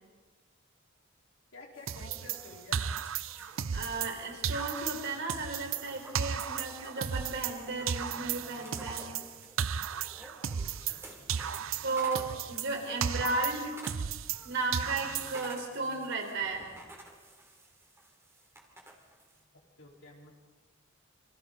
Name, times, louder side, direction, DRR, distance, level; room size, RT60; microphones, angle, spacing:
voice 1, 1.5-2.9 10.6-11.9 19.8-20.3, left 3 dB, 75° left, -1 dB, 4.3 m, -52 dB
sound 1, 1.7-19.4, right 1 dB, 15° right, 3.0 m, -52 dB
sound 2, 1.9-4.2 4.4-7.6 7.9-11.0 11.3-14.4 14.7-15.6, right 8 dB, 80° right, 0.6 m, -35 dB
voice 2, 3.4-9.1 11.8-13.7 14.4-16.6, right 3 dB, 65° right, 2 dB, 4.3 m, -34 dB
27.5 x 24.5 x 4.0 m, 1.3 s
head